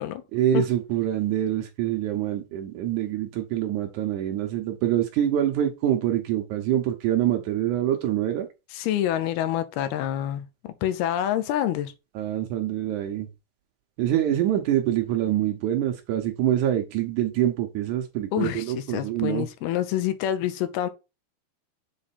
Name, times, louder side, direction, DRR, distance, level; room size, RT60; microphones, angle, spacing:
voice 1, 0.3-8.5 12.2-13.3 14.0-19.5, right 11 dB, 85° right, 1.7 m, -25 dB
voice 2, 8.7-11.9 18.3-20.9, left 11 dB, 80° left, 2.7 m, -27 dB
7.5 x 3.3 x 4.2 m
omnidirectional pair, 4.6 m